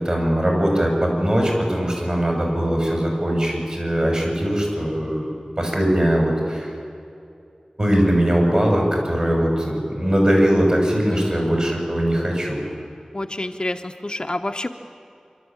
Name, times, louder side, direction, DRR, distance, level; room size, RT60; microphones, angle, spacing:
voice 1, 0.0-5.3 5.6-6.7 7.8-12.6, equal, 40° right, 0 dB, 6.9 m, -20 dB
voice 2, 11.1-11.5 13.1-14.8, left 1 dB, 40° left, 5 dB, 0.9 m, -28 dB
26.0 x 12.5 x 8.9 m, 2.5 s
wide cardioid pair, 50°, 2 cm